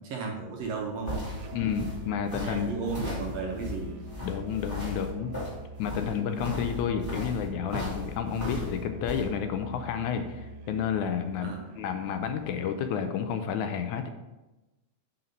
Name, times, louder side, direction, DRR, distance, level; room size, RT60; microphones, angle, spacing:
voice 1, 0.1-1.3 2.4-4.0 11.4-11.7, right 4 dB, 70° right, 1 dB, 1.7 m, -34 dB
sound 1, 0.6-9.3, left 1 dB, 5° left, 2.1 m, -37 dB
Musical instrument, 1.4-13.1, equal, 85° right, 2.3 m, -45 dB
voice 2, 1.5-2.7 4.2-5.3 5.8-14.1, left 7 dB, 80° left, 7 dB, 1.9 m, -31 dB
7.9 x 4.4 x 5.2 m, 1.1 s
omnidirectional pair, 3.5 m